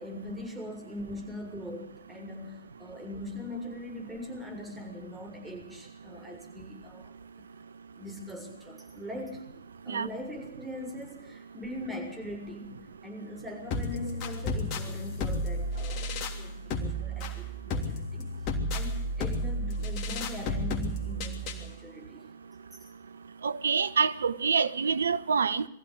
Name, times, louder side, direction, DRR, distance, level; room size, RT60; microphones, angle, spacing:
voice 1, 0.0-7.1 7.9-9.4 9.9-18.3 18.7-22.2, left 1 dB, 5° right, 7.0 m, -41 dB
sound 1, 13.7-21.7, left 1 dB, 40° left, 3.3 m, -32 dB
voice 2, 23.4-25.7, right 5 dB, 85° right, 1.1 m, -26 dB
22.5 x 15.0 x 7.9 m
hypercardioid pair, 115°, 0 cm